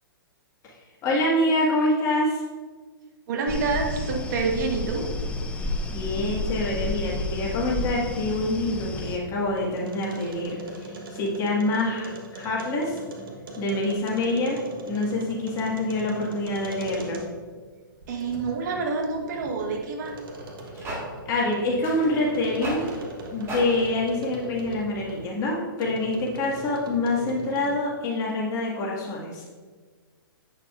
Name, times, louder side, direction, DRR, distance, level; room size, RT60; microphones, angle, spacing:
voice 1, 1.0-2.4 5.9-13.0 13.6-14.6 14.9-17.2 21.3-22.8 23.3-29.4, left 2 dB, 25° left, -4 dB, 1.8 m, -26 dB
voice 2, 3.3-5.1 18.1-20.1, right 4 dB, 55° right, 2 dB, 1.2 m, -27 dB
sound 1, 3.5-9.2, left 2 dB, 10° left, 0.5 m, -31 dB
sound 2, 8.7-17.5 18.0-25.3 25.8-27.9, right 1 dB, 70° right, 1.3 m, -40 dB
sound 3, 17.9-18.0 18.3-18.4 18.7-18.9 19.7-19.8 20.4-23.9, right 1 dB, 20° right, 1.6 m, -38 dB
8.4 x 6.5 x 2.5 m, 1.5 s
hypercardioid pair, 130°, 12 cm